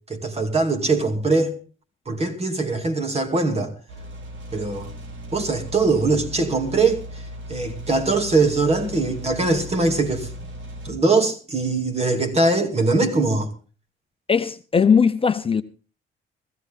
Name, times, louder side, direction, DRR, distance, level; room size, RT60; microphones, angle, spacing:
voice 1, 0.1-1.5 2.1-3.7 4.5-4.9 5.3-7.0 7.5-10.3 10.8-13.5, right 3 dB, 30° right, 2.6 m, -21 dB
sound 1, 3.9-10.9, equal, 70° right, 3.2 m, -37 dB
voice 2, 14.3-15.6, left 6 dB, 30° left, 0.6 m, -19 dB
15.5 x 15.0 x 3.7 m
cardioid pair, 90°, 20 cm